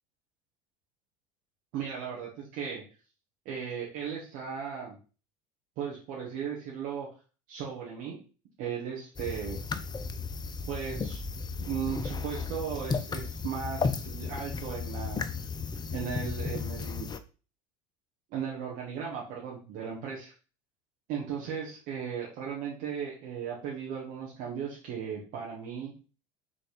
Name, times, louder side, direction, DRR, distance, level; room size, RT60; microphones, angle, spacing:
voice 1, 1.7-2.8 3.5-5.0 5.8-7.1 7.5-8.2 8.6-9.6 10.7-11.2 11.6-15.2 15.9-17.1 18.3-20.3 21.1-26.0, right 7 dB, 60° right, -4 dB, 2.2 m, -36 dB
sound 1, 9.2-17.2, left 5 dB, 25° left, 0.8 m, -34 dB
5.6 x 4.1 x 5.3 m, 0.35 s
hypercardioid pair, 75°, 17 cm